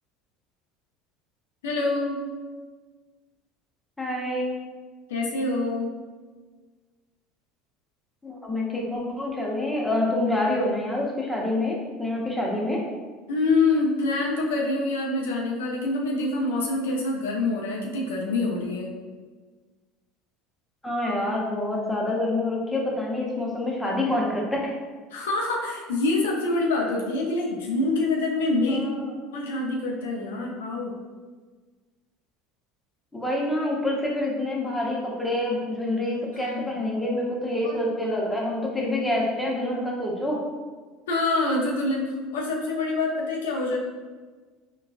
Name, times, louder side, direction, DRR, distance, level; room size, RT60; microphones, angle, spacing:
voice 1, 1.6-2.2 5.1-5.9 13.3-18.9 25.1-28.9 29.3-30.9 36.3-36.8 37.6-37.8 41.1-43.8, left 2 dB, 85° left, -1 dB, 0.5 m, -26 dB
voice 2, 4.0-4.5 8.2-12.8 20.8-24.7 28.7-29.1 33.1-40.4, left 1 dB, 10° left, -2 dB, 0.8 m, -27 dB
3.9 x 2.3 x 2.4 m, 1.4 s
hypercardioid pair, 85°, 0 cm